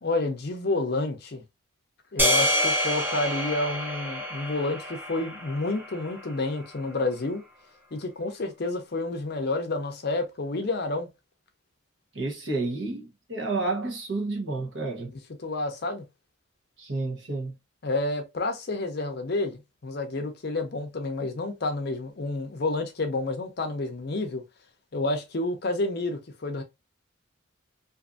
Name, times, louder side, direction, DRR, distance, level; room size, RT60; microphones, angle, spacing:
voice 1, 0.0-1.4 2.1-7.4 7.9-11.1 15.4-16.0 17.8-24.4 24.9-26.6, left 2 dB, 50° left, 0.5 m, -29 dB
sound 1, 2.2-6.5, equal, 10° right, 0.5 m, -27 dB
voice 2, 12.1-15.1 16.8-17.5, right 3 dB, 55° right, 0.9 m, -30 dB
2.6 x 2.5 x 2.3 m
head